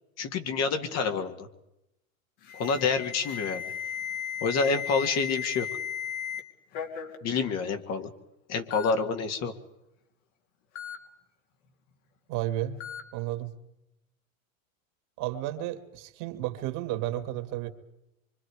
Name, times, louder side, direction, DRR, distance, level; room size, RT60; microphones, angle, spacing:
voice 1, 0.2-1.5 2.5-3.6 4.4-5.7 7.2-8.1 8.5-9.5, left 5 dB, 40° left, 6 dB, 2.1 m, -28 dB
Alarm, 2.4-6.4 6.7-7.2 8.0-8.1 8.7-8.9 10.8-11.0 12.8-13.0, left 8 dB, 55° left, 3.0 m, -35 dB
voice 2, 12.3-12.8 13.1-13.5 15.2-17.7, right 14 dB, 50° right, 8 dB, 2.3 m, -32 dB
25.0 x 25.0 x 4.9 m, 0.86 s
hypercardioid pair, 115°, 42 cm